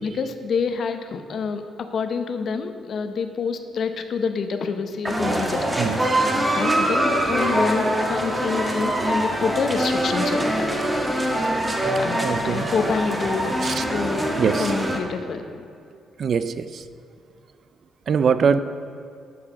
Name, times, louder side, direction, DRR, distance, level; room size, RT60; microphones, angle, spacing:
voice 1, 0.0-10.8 12.0-14.3 14.6-15.7, left 5 dB, 55° left, 8 dB, 0.8 m, -28 dB
sound 1, 5.0-15.0, right 1 dB, 15° right, 1.3 m, -23 dB
voice 2, 12.2-12.7 13.6-13.8 14.4-14.7 16.2-16.8 18.1-18.6, right 6 dB, 55° right, 12 dB, 0.4 m, -22 dB
11.0 x 4.8 x 6.1 m, 2.5 s
cardioid pair, 90°, 0 cm